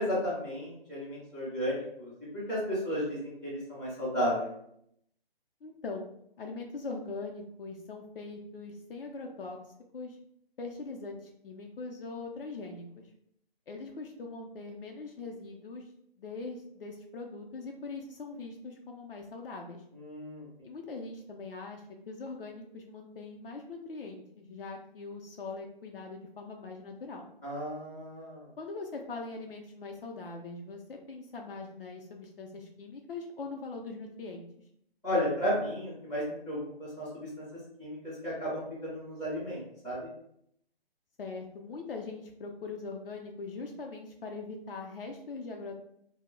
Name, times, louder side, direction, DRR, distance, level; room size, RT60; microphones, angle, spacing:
voice 1, 0.0-4.5 19.9-20.5 27.4-28.4 35.0-37.1 37.4-37.5 37.8-40.0, equal, 5° left, -12 dB, 0.4 m, -33 dB
voice 2, 5.6-6.1 6.4-9.6 9.9-10.2 10.6-13.0 13.7-15.9 16.2-19.8 20.6-27.2 28.6-34.5 41.2-45.7, left 3 dB, 65° left, 1 dB, 0.5 m, -41 dB
2.1 x 2.0 x 3.5 m, 0.73 s
figure-of-eight pair, 140°, 30 cm